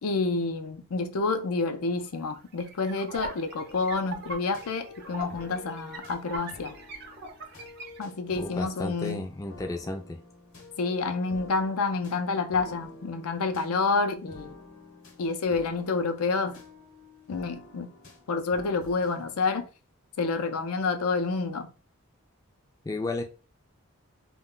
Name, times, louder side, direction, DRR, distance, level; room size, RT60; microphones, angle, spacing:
voice 1, 0.0-6.8 8.0-9.3 10.8-14.5 15.2-16.6 17.3-17.9 18.3-19.7 20.2-21.7, left 4 dB, 85° left, 0.5 m, -28 dB
sound 1, 2.0-8.0, right 2 dB, 45° right, 0.5 m, -41 dB
sound 2, 3.7-19.3, left 2 dB, 65° left, 0.9 m, -49 dB
voice 2, 8.4-10.2 22.8-23.2, left 2 dB, 15° left, 0.3 m, -33 dB
2.2 x 2.2 x 3.7 m
head